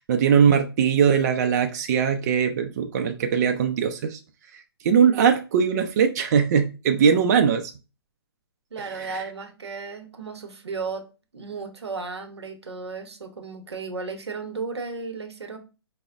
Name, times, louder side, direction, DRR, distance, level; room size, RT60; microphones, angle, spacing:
voice 1, 0.0-4.2 4.8-7.7 8.9-9.2, right 7 dB, 40° right, 5 dB, 0.4 m, -21 dB
voice 2, 8.7-11.1 11.3-15.6, right 4 dB, 90° right, 6 dB, 0.8 m, -34 dB
4.9 x 2.0 x 2.3 m, 0.31 s
hypercardioid pair, 140°, 14 cm